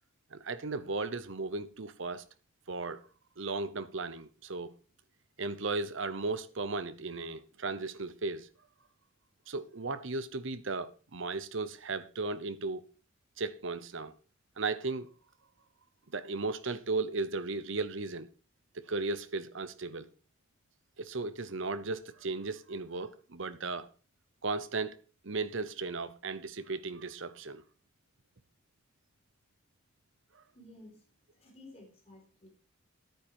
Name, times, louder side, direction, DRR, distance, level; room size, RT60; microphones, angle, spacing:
voice 1, 0.3-2.2 2.7-3.0 3.4-4.7 5.4-8.5 9.5-12.8 13.4-14.1 14.6-15.1 16.1-18.3 18.7-20.1 21.0-23.9 24.4-25.0 25.2-27.6, right 3 dB, 60° right, 0.9 m, -36 dB
voice 2, 30.5-32.5, left 1 dB, 30° left, 4.2 m, -54 dB
10.5 x 9.3 x 4.7 m
head